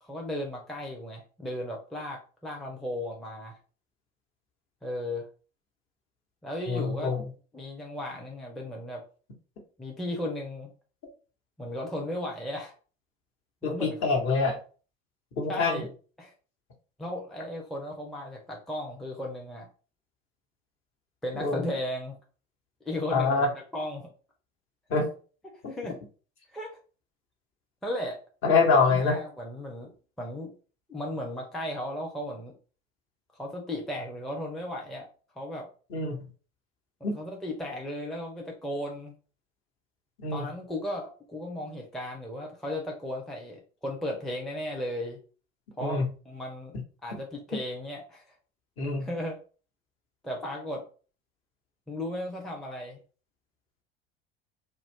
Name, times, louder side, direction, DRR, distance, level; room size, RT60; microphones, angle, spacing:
voice 1, 0.0-3.6 4.8-5.3 6.4-7.1 7.5-9.0 9.8-10.7 11.6-12.7 13.6-14.2 15.5-15.9 16.2-16.3 17.0-19.7 21.2-22.2 22.8-24.1 25.4-26.0 26.5-26.8 27.8-28.2 28.9-29.9 30.2-30.5 30.9-32.5 33.3-35.1 35.4-35.7 37.0-39.1 40.3-45.2 45.8-46.7 47.0-48.3 49.0-49.4 50.2-50.8 51.9-53.0, left 1 dB, ahead, -1 dB, 0.5 m, -35 dB
voice 2, 6.7-7.3 13.6-14.5 15.4-15.8 21.3-21.6 23.1-23.5 24.9-25.1 28.4-29.2 35.9-36.2 37.0-37.2 40.2-40.5 45.8-46.0 47.5-47.6 48.8-49.1, left 4 dB, 45° left, 0 dB, 1.0 m, -25 dB
2.3 x 2.1 x 3.4 m, 0.38 s
figure-of-eight pair, 70°, 31 cm